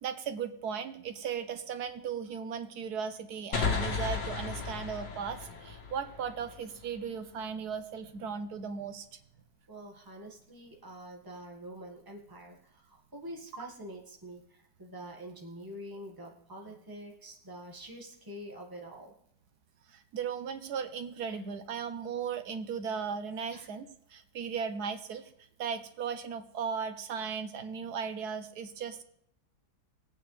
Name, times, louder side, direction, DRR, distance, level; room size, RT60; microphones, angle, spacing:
voice 1, 0.0-9.0 20.1-23.9 24.1-25.2 25.6-29.0, right 6 dB, 70° right, 9 dB, 1.4 m, -36 dB
sound 1, 3.5-7.0, left 5 dB, 85° left, 2.2 m, -34 dB
voice 2, 9.7-19.1 21.3-21.4 23.5-23.7, right 1 dB, 15° right, 0 dB, 1.7 m, -46 dB
19.5 x 8.9 x 3.4 m, 0.71 s
omnidirectional pair, 1.8 m